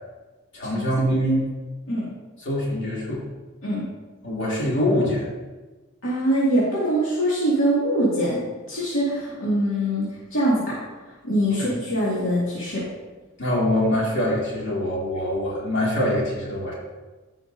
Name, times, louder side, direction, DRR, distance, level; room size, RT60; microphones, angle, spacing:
voice 1, 0.5-1.4 2.4-3.2 4.2-5.3 11.6-11.7 13.4-16.7, left 1 dB, 65° left, -6 dB, 2.9 m, -24 dB
voice 2, 6.0-8.4 8.7-10.8 11.2-12.8, right 1 dB, 80° left, -8 dB, 2.3 m, -23 dB
14.5 x 5.7 x 2.7 m, 1.2 s
head